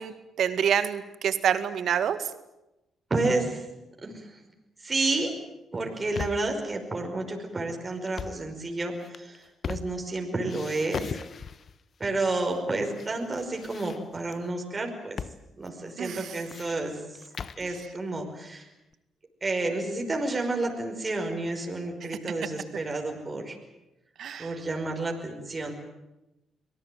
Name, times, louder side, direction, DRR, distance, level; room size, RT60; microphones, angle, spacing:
voice 1, 0.0-2.3 16.0-16.4 17.6-17.7 22.1-22.2 24.2-24.5, right 8 dB, 70° right, 11 dB, 1.9 m, -27 dB
voice 2, 3.1-3.6 4.0-4.2 4.8-5.3 5.7-11.1 12.0-15.2 15.6-17.0 17.6-18.7 19.4-23.6 24.4-25.7, right 2 dB, 30° right, 3 dB, 5.4 m, -30 dB
sound 1, 5.8-6.6 8.0-8.5 9.0-10.2 10.5-11.8 12.5-13.1 13.3-14.4 15.2-15.4 15.7-15.8 16.2-17.7, left 6 dB, 55° left, 1.1 m, -38 dB
24.5 x 18.0 x 9.3 m, 0.94 s
supercardioid pair, 60°, 0 cm